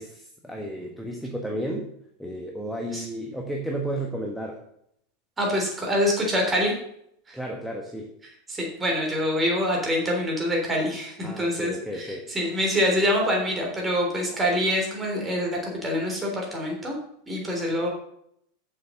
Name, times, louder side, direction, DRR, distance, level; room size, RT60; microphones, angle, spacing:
voice 1, 0.0-1.9 2.2-4.6 7.3-8.1 11.2-12.3, right 1 dB, ahead, 0 dB, 1.2 m, -33 dB
voice 2, 5.4-6.7 7.3-7.4 8.5-16.9 17.3-17.9, equal, 15° right, 0 dB, 3.5 m, -25 dB
7.0 x 7.0 x 6.4 m, 0.73 s
supercardioid pair, 135°, 0 cm